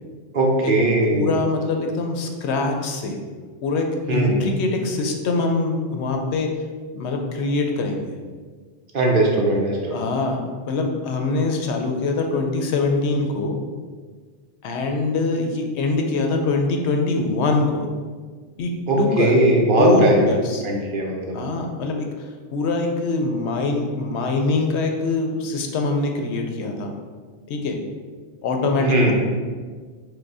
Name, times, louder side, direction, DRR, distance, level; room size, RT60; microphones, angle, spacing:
voice 1, 0.3-1.3 4.1-4.4 8.9-10.0 18.9-20.2 20.6-21.4 28.8-29.1, right 2 dB, 55° right, -1 dB, 0.8 m, -19 dB
voice 2, 1.1-3.2 3.6-6.5 6.9-8.1 9.9-13.6 14.6-17.9 18.6-18.7 19.0-19.3 19.8-20.7 21.3-22.2 22.5-26.9 27.5-27.8 28.4-29.1, left 3 dB, 75° left, 3 dB, 0.8 m, -23 dB
4.8 x 2.2 x 4.7 m, 1.5 s
omnidirectional pair, 1.2 m